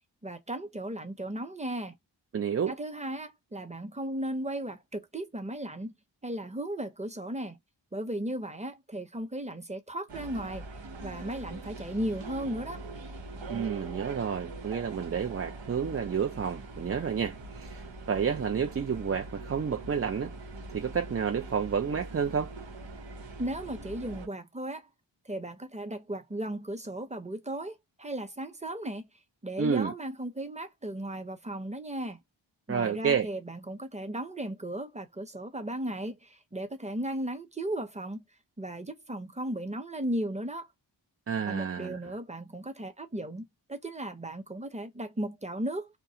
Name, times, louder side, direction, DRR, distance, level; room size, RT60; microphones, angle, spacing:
voice 1, 0.2-1.9 2.7-5.9 6.2-7.6 7.9-10.6 11.0-12.8 23.4-24.9 25.2-29.1 29.4-32.2 32.7-38.2 38.6-40.7 41.5-45.9, right 1 dB, 15° right, 0.8 m, -36 dB
voice 2, 2.3-2.8 13.5-20.3 20.7-22.5 29.6-29.9 32.7-33.3 41.3-42.0, right 7 dB, 35° right, 0.4 m, -30 dB
sound 1, 10.1-24.3, right 3 dB, 80° right, 1.0 m, -42 dB
2.3 x 2.2 x 2.7 m
wide cardioid pair, 45°, 44 cm